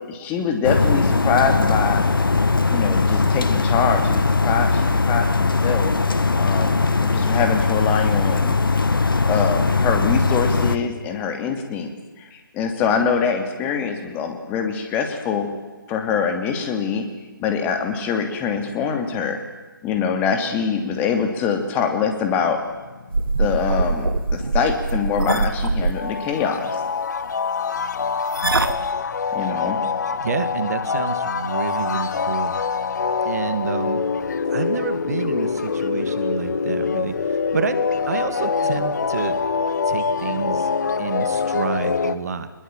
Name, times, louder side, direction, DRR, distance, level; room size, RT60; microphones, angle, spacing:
voice 1, 0.1-2.1 2.7-5.9 6.4-8.6 9.3-11.9 12.2-15.5 15.9-17.0 17.4-19.4 19.8-22.6 23.4-26.8 29.3-29.8, left 6 dB, 15° left, 6 dB, 2.7 m, -24 dB
sound 1, 0.6-10.8, left 3 dB, 75° left, 1.9 m, -19 dB
sound 2, 22.5-23.6 23.9-25.2 25.6-25.7 25.9-42.2, left 5 dB, 55° left, 1.6 m, -25 dB
sound 3, 23.1-25.9 28.3-28.8, right 3 dB, 80° right, 2.4 m, -22 dB
voice 2, 30.2-32.8 33.2-34.0 34.5-39.4 39.9-40.7 41.0-42.5, right 6 dB, 45° right, 11 dB, 2.5 m, -28 dB
24.0 x 21.0 x 9.1 m, 1.3 s
figure-of-eight pair, 150°, 12 cm